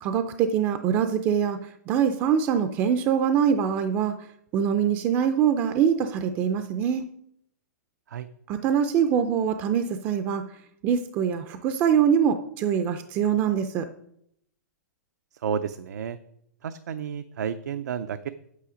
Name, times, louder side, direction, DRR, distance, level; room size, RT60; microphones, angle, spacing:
voice 1, 0.0-1.6 1.9-4.1 4.5-7.1 8.5-10.4 10.8-13.9, right 8 dB, 20° right, 9 dB, 0.4 m, -23 dB
voice 2, 15.4-16.2 16.6-18.3, right 7 dB, 70° right, 10 dB, 0.5 m, -31 dB
8.4 x 8.0 x 5.0 m, 0.73 s
hypercardioid pair, 160°, 10 cm